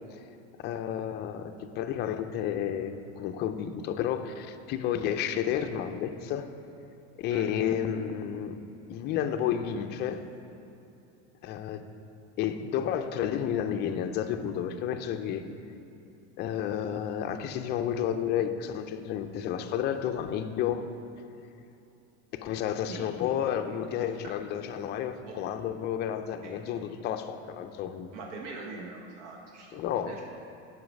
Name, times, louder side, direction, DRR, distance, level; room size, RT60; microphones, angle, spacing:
voice 1, 0.6-6.5 7.2-8.6 8.9-10.2 11.4-11.9 12.4-15.4 16.4-20.9 22.3-28.1 29.7-30.1, left 9 dB, 30° left, 7 dB, 0.4 m, -31 dB
voice 2, 24.0-24.3 25.3-25.4 26.4-26.5 28.1-29.8 30.0-30.2, right 3 dB, 80° right, 0 dB, 1.0 m, -42 dB
7.8 x 5.7 x 5.2 m, 2.8 s
supercardioid pair, 145°, 35 cm